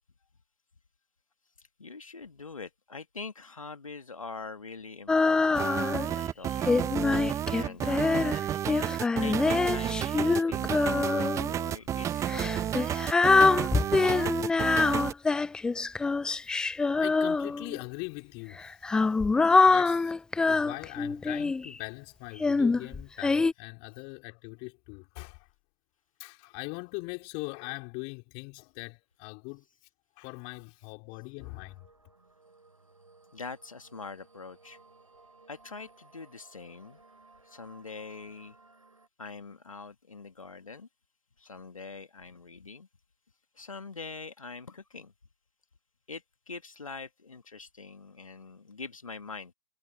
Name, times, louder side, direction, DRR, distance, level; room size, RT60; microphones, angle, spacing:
voice 1, 1.6-6.8 7.5-8.4 9.2-12.8 13.9-14.5 19.0-19.3 33.3-34.8 35.5-37.0 37.4-38.6 39.2-40.9 41.4-42.9 43.6-45.1 46.1-49.5, left 4 dB, 85° left, 1.7 m, -44 dB
Female singing, 5.1-6.1 6.7-11.5 12.3-17.8 18.6-21.7 22.4-23.5, left 4 dB, 5° left, 0.3 m, -25 dB
sound 1, 5.5-15.1, right 10 dB, 20° right, 0.8 m, -31 dB
voice 2, 16.9-18.8 19.7-20.1 20.5-25.5 26.2-29.6 30.2-31.9, left 35 dB, 35° left, 4.1 m, -41 dB
sound 2, 31.4-39.1, right 3 dB, 85° right, 6.5 m, -59 dB
figure-of-eight pair, 115°, 17 cm